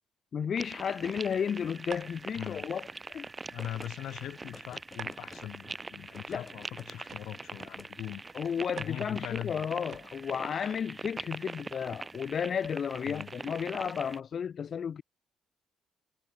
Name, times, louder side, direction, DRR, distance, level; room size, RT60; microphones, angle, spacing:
voice 1, 0.3-3.3 6.3-6.5 8.3-15.0, left 7 dB, 45° left, 1.0 m, -33 dB
sound 1, 0.6-14.2, right 3 dB, 20° right, 3.4 m, -43 dB
sound 2, 1.9-10.5, right 8 dB, 55° right, 2.3 m, -53 dB
voice 2, 2.4-2.7 3.5-8.2 8.8-9.7 13.1-13.3, left 12 dB, 75° left, 2.0 m, -41 dB
sound 3, 3.6-3.9 4.5-5.5 6.1-6.9 7.6-7.9, left 4 dB, 25° left, 1.4 m, -51 dB
cardioid pair, 105°, 0 cm